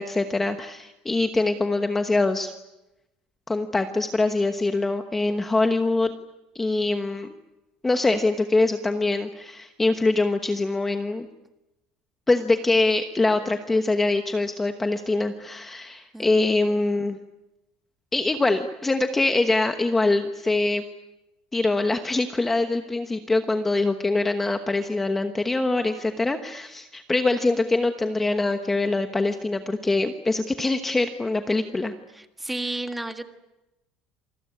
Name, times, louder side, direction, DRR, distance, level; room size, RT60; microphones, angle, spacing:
voice 1, 0.0-2.5 3.5-6.1 6.5-7.3 7.8-11.3 12.3-17.2 18.1-20.8 21.5-31.9, left 2 dB, 10° left, 7 dB, 1.1 m, -24 dB
voice 2, 16.1-16.5 32.1-33.3, right 2 dB, 5° right, 7 dB, 1.6 m, -32 dB
27.5 x 21.5 x 9.8 m, 0.96 s
cardioid pair, 170°, 2 cm